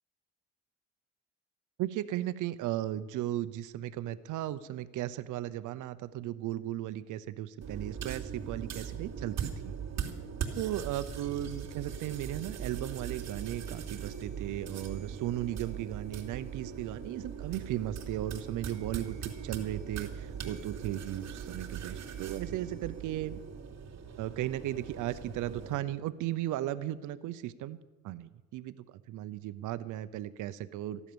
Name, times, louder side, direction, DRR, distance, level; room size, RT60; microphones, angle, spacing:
voice 1, 1.8-9.7 10.5-23.4 24.2-27.8 28.0-31.0, right 13 dB, 85° right, 12 dB, 0.8 m, -36 dB
sound 1, 7.6-25.8, right 7 dB, 60° right, 3.0 m, -40 dB
15.0 x 11.5 x 6.9 m, 1.2 s
cardioid pair, 90°, 30 cm